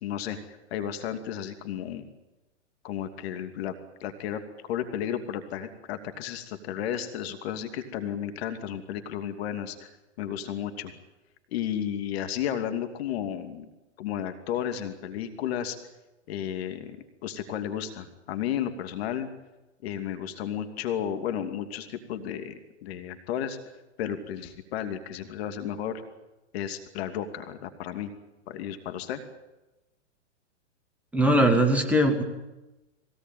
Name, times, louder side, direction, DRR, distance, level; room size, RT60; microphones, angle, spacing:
voice 1, 0.0-2.1 2.8-3.7 4.0-9.9 10.2-10.9 11.5-13.7 14.0-15.8 16.3-19.3 19.8-23.6 24.0-26.0 26.5-28.1 28.5-29.2, left 9 dB, 55° left, 8 dB, 2.6 m, -33 dB
voice 2, 31.1-32.2, right 1 dB, 5° right, 3 dB, 2.4 m, -20 dB
21.5 x 17.5 x 9.3 m, 1.0 s
hypercardioid pair, 125°, 36 cm